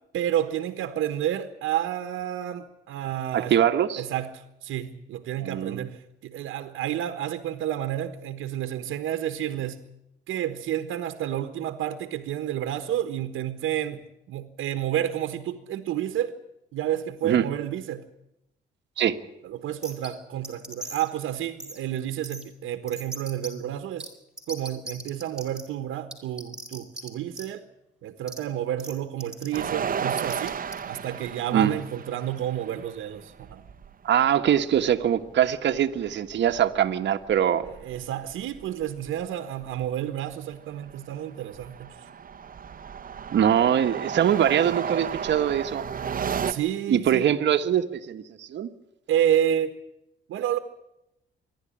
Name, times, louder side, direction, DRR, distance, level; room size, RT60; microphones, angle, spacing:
voice 1, 0.1-3.5 4.0-9.8 10.3-16.4 16.7-18.0 19.4-24.1 24.5-27.6 28.0-30.6 30.9-33.6 37.8-41.9 46.5-47.2 49.1-49.8 50.3-50.6, right 11 dB, 80° right, 1.4 m, -30 dB
voice 2, 3.3-4.0 5.4-5.8 17.2-17.5 19.0-19.2 31.5-31.7 34.0-37.7 43.3-45.9 46.9-48.7, right 9 dB, 65° right, 1.4 m, -23 dB
sound 1, 19.8-20.1 20.4-21.1 21.6-21.8 22.2-22.4 22.9-23.5 24.0-24.1 24.4-25.6 26.1-27.1 27.3-27.5 28.3-28.4 28.8-28.9 29.2-29.6 30.2-30.7, right 2 dB, 5° right, 4.8 m, -38 dB
sound 2, 29.5-33.9 34.2-34.3 34.6-36.9 37.2-39.1 39.6-39.8 40.3-46.5, right 7 dB, 45° right, 1.2 m, -34 dB
27.0 x 11.5 x 10.0 m
cardioid pair, 90°, 20 cm